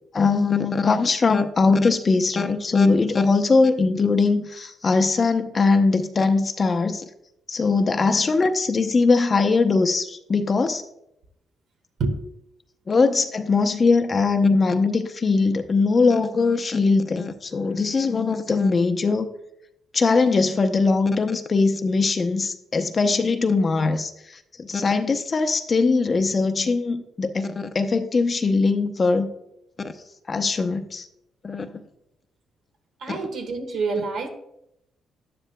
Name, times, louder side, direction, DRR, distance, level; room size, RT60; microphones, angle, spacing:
voice 1, 0.1-7.0 7.5-10.8 12.9-19.3 19.9-29.3 30.3-31.1 31.4-31.7, left 4 dB, 35° left, 7 dB, 0.7 m, -21 dB
voice 2, 33.0-34.3, right 4 dB, 70° right, 4 dB, 1.5 m, -27 dB
11.0 x 10.0 x 2.2 m, 0.80 s
cardioid pair, 90°, 0 cm